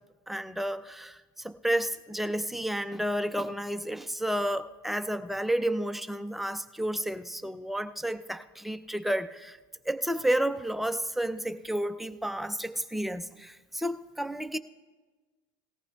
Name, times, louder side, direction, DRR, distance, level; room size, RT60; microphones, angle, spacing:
voice 1, 0.3-9.6 9.9-14.6, right 1 dB, ahead, 9 dB, 0.4 m, -31 dB
18.5 x 14.5 x 2.3 m, 1.3 s
supercardioid pair, 135°, 10 cm